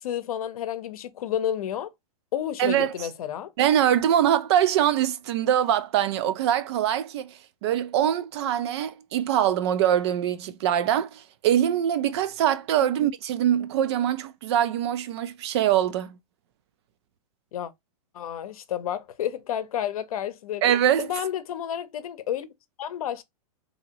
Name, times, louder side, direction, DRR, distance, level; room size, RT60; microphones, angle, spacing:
voice 1, 0.0-1.9 2.3-3.5 12.8-12.9 17.5-17.7 18.1-20.6 21.0-22.5 22.8-23.2, left 10 dB, 70° left, 0.7 m, -31 dB
voice 2, 2.6-3.1 3.6-16.2 20.6-21.1, right 10 dB, 45° right, 0.4 m, -23 dB
2.8 x 2.7 x 2.8 m
hypercardioid pair, 155°, 19 cm